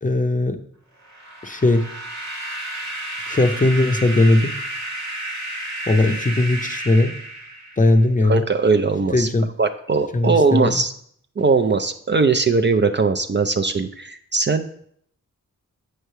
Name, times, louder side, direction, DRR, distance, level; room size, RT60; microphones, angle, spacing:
voice 1, 0.0-0.6 1.4-1.9 3.3-4.5 5.9-7.1 7.8-8.4 9.1-9.5 10.1-10.8, left 2 dB, 25° left, 7 dB, 0.6 m, -18 dB
sound 1, 1.0-8.0, right 1 dB, 55° right, 1.4 m, -32 dB
voice 2, 8.3-9.3 9.6-10.9 11.4-14.6, right 4 dB, 35° right, 7 dB, 0.4 m, -19 dB
7.9 x 3.2 x 5.6 m, 0.65 s
cardioid pair, 65°, 33 cm